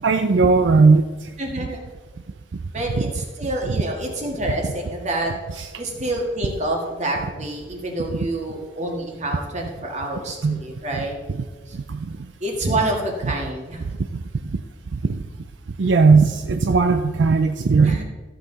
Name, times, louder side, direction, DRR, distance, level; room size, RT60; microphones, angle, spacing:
voice 1, 0.0-1.0 1.6-1.7 3.0-3.1 3.6-3.8 5.5-5.7 8.2-8.3 10.4-10.6 11.0-11.1 11.9-12.1 15.1-15.2 15.8-18.0, right 4 dB, 70° right, 7 dB, 0.5 m, -17 dB
voice 2, 1.4-1.9 2.7-5.3 5.8-11.2 11.7-11.8 12.4-13.9 17.8-18.0, right 1 dB, 40° right, 0 dB, 2.0 m, -27 dB
14.0 x 7.8 x 4.0 m, 1.3 s
head